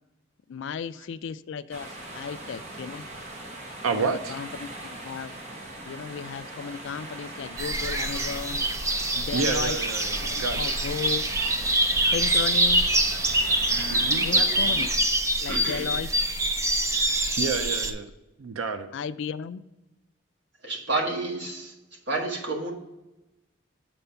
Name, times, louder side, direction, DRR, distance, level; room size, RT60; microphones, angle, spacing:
voice 1, 0.5-3.1 3.9-5.4 5.9-9.8 10.2-11.2 12.1-12.9 13.7-14.9 15.4-16.1 18.9-19.6, left 6 dB, 65° left, 15 dB, 0.3 m, -35 dB
sound 1, 1.7-15.0, right 1 dB, 35° right, 1.0 m, -41 dB
voice 2, 3.8-4.4 9.3-10.7 13.9-14.3 17.4-18.1 18.4-18.9, right 5 dB, 80° right, 9 dB, 0.5 m, -29 dB
sound 2, 7.6-17.9, right 1 dB, 15° right, 0.4 m, -25 dB
voice 3, 14.3-14.9 15.5-15.9 20.6-21.7 22.1-22.7, right 2 dB, 55° right, 0 dB, 1.6 m, -30 dB
7.0 x 4.3 x 6.8 m, 0.98 s
head